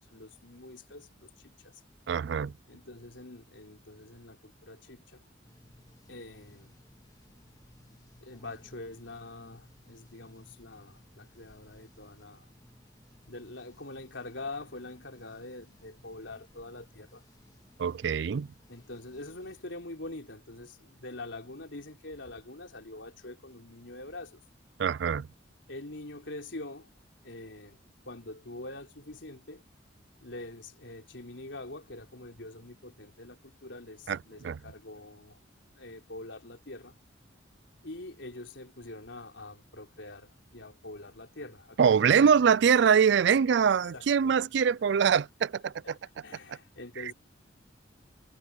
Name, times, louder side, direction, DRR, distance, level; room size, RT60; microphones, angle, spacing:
voice 1, 0.1-1.8 2.7-5.2 6.1-6.8 8.2-12.5 13.3-17.2 18.7-24.4 25.7-26.9 27.2-29.6 30.2-35.4 35.8-37.0 37.8-41.8 42.1-42.3 43.9-44.3 45.8-47.1, left 2 dB, 75° left, 4.0 m, -45 dB
voice 2, 2.1-2.5 17.8-18.5 24.8-25.3 34.1-34.2 34.4-34.6 41.8-46.0, right 7 dB, 65° right, 0.4 m, -23 dB
sound 1, 5.4-19.6, left 1 dB, 20° left, 1.8 m, -60 dB
head